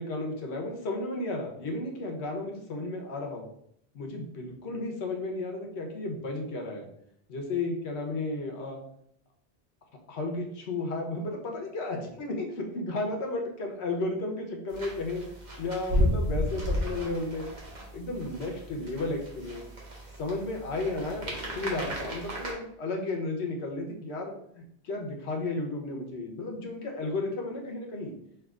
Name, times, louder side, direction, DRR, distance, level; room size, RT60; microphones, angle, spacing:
voice 1, 0.0-3.5 3.9-6.9 7.3-8.8 10.1-15.2 15.6-17.5 17.9-19.6 20.2-24.4 24.8-28.1, left 2 dB, 80° left, 1 dB, 1.1 m, -33 dB
sound 1, 14.7-22.5, equal, 45° right, 1.0 m, -33 dB
5.7 x 2.8 x 2.4 m, 0.72 s
omnidirectional pair, 1.1 m